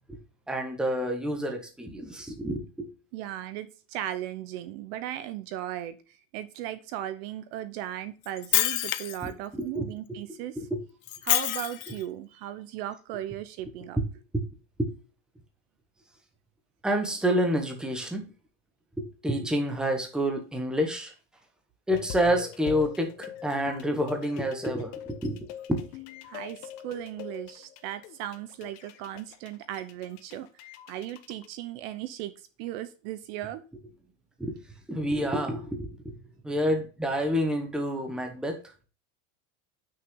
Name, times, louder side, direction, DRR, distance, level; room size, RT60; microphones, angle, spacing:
voice 1, 0.5-2.9 9.2-10.2 10.6-10.8 14.3-14.4 14.8-14.9 16.8-18.3 19.0-21.1 21.9-25.8 34.4-34.6 34.9-36.1 36.4-38.6, equal, ahead, 4 dB, 1.0 m, -28 dB
voice 2, 3.1-10.6 11.2-14.0 26.2-30.6 30.9-33.6, right 12 dB, 45° right, 13 dB, 0.7 m, -37 dB
Shatter, 8.2-9.3 11.1-12.0, left 16 dB, 75° left, 0.9 m, -26 dB
sound 1, 21.9-31.5, left 11 dB, 55° left, 1.3 m, -43 dB
8.8 x 6.3 x 3.6 m, 0.35 s
supercardioid pair, 175°, 42 cm